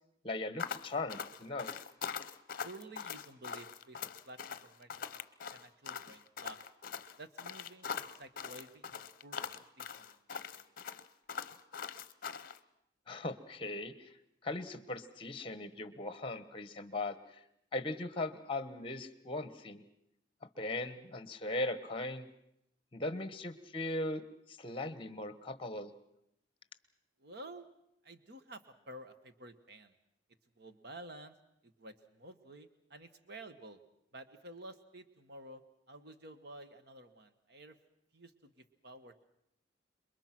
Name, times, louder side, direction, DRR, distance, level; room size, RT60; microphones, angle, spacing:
voice 1, 0.2-1.7 13.1-14.1 14.4-17.4 17.7-19.8 20.6-22.3 22.9-24.2 24.5-25.9, left 2 dB, 30° left, 13 dB, 1.3 m, -39 dB
sound 1, 0.6-12.6, left 6 dB, 50° left, 0.8 m, -42 dB
voice 2, 2.6-5.2 5.5-6.6 7.2-9.0 9.2-10.7 27.2-27.7 28.0-29.9 30.6-31.3 31.6-33.8 34.1-35.6 35.9-37.8 38.1-39.3, right 1 dB, 60° right, 9 dB, 1.5 m, -52 dB
27.5 x 22.5 x 6.0 m, 0.78 s
head